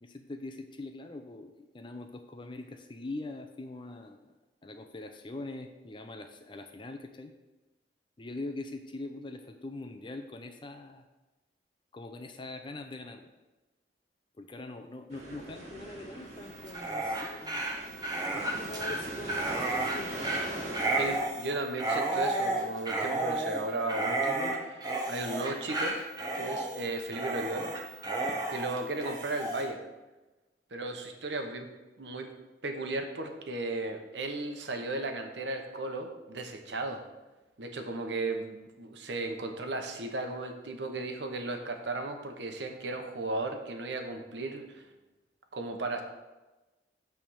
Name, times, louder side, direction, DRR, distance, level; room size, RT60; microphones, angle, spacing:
voice 1, 0.0-4.3 4.6-7.3 8.2-11.0 11.9-13.3 14.4-17.7 18.3-20.4, left 2 dB, 30° left, 6 dB, 0.5 m, -42 dB
sound 1, 15.1-21.2, right 1 dB, 40° right, 2.0 m, -41 dB
Dog, 16.6-29.6, right 2 dB, 25° right, 1.1 m, -32 dB
voice 2, 21.0-26.0 26.3-27.7 28.2-29.8 30.7-31.7 32.0-32.3 32.6-37.0 37.6-44.9 45.5-46.0, right 2 dB, 80° right, 4 dB, 1.0 m, -35 dB
8.7 x 3.5 x 6.3 m, 1.1 s
head